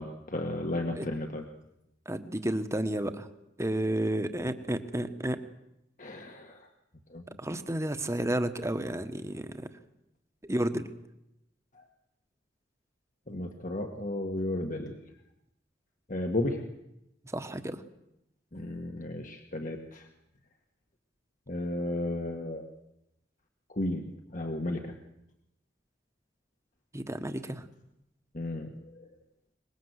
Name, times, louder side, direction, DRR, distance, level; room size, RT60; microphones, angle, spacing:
voice 1, 0.0-1.4 6.0-6.7 7.1-7.2 11.7-11.8 13.3-15.0 16.1-16.7 18.5-20.1 21.5-22.6 23.7-25.0 28.3-29.1, left 1 dB, 45° left, 4 dB, 1.9 m, -34 dB
voice 2, 2.0-3.3 3.6-5.4 7.4-9.7 10.4-10.9 17.3-17.8 26.9-27.6, right 1 dB, 15° right, 9 dB, 1.4 m, -31 dB
24.0 x 21.0 x 8.2 m, 0.86 s
head